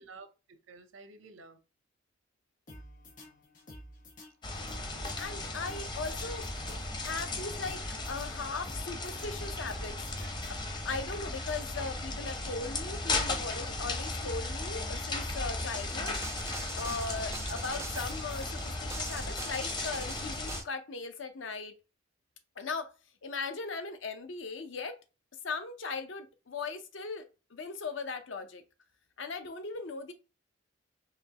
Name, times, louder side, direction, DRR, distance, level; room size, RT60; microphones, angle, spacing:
voice 1, 0.0-1.6 4.7-5.2, right 3 dB, 85° right, 0.7 m, -53 dB
sound 1, 2.7-11.0, left 1 dB, 45° left, 1.4 m, -51 dB
sound 2, 4.4-20.6, left 2 dB, 25° left, 0.7 m, -36 dB
voice 2, 5.2-6.5 7.0-10.0 10.5-16.2 16.7-21.8 22.6-22.9 23.2-25.0 25.4-27.3 27.5-28.6 29.2-30.1, left 4 dB, 70° left, 0.6 m, -38 dB
sound 3, 15.6-20.6, right 4 dB, 15° right, 0.4 m, -44 dB
4.2 x 3.0 x 2.8 m
head